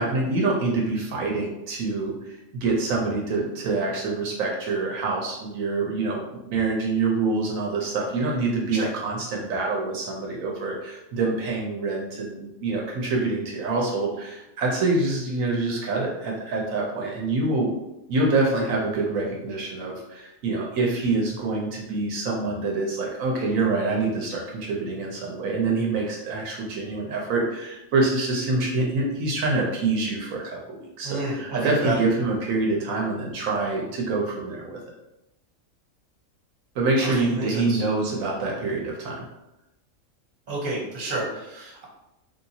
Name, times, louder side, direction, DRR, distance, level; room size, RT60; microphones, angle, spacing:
voice 1, 0.0-6.2 6.5-17.7 18.1-34.8 36.7-39.2, right 3 dB, 80° right, -1 dB, 1.0 m, -26 dB
voice 2, 31.0-31.9 37.0-37.8 40.5-41.8, right 3 dB, 45° right, -4 dB, 1.0 m, -30 dB
3.2 x 2.8 x 2.7 m, 0.92 s
omnidirectional pair, 1.4 m